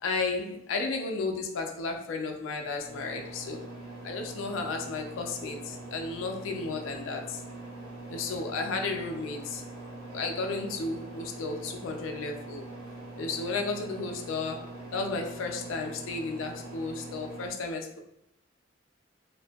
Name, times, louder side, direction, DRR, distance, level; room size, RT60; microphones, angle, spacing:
voice 1, 0.0-3.6 4.0-7.4 8.1-9.6 10.1-12.7 13.2-18.0, left 3 dB, 80° left, 4 dB, 0.4 m, -33 dB
sound 1, 2.8-17.5, right 2 dB, 35° right, 1.5 m, -43 dB
2.6 x 2.5 x 2.2 m, 0.80 s
head